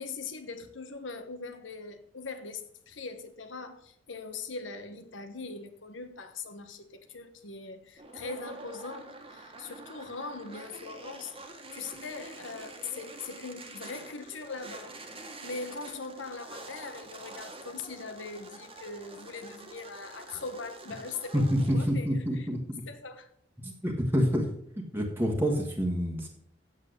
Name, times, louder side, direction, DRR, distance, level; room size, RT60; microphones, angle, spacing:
voice 1, 0.0-15.0 15.4-22.5 22.9-23.3, left 4 dB, 80° left, 1.2 m, -41 dB
sound 1, 8.0-21.7, right 2 dB, 30° right, 1.5 m, -47 dB
voice 2, 21.3-22.6 23.6-24.5 24.9-26.3, equal, 10° right, 1.4 m, -27 dB
8.4 x 7.5 x 6.5 m
head